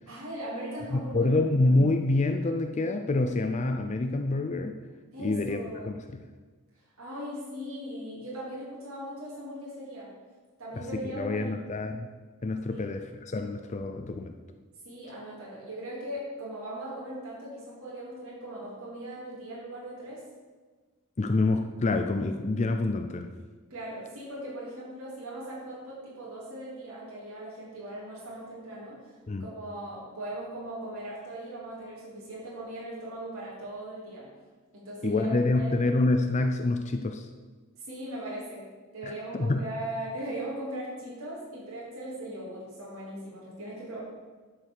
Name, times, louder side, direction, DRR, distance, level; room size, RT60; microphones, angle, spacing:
voice 1, 0.1-1.4 5.1-5.9 7.0-10.1 10.6-11.5 12.7-12.9 14.8-20.2 23.7-29.1 29.4-34.3 34.7-35.7 37.8-38.7 38.9-44.0, right 1 dB, 70° right, -7 dB, 3.2 m, -39 dB
voice 2, 0.9-4.8 5.2-6.2 10.8-12.1 12.4-14.3 21.2-23.3 29.3-29.5 35.0-37.3 39.1-39.6, left 2 dB, 30° left, 6 dB, 0.5 m, -27 dB
11.0 x 4.8 x 6.6 m, 1.4 s
head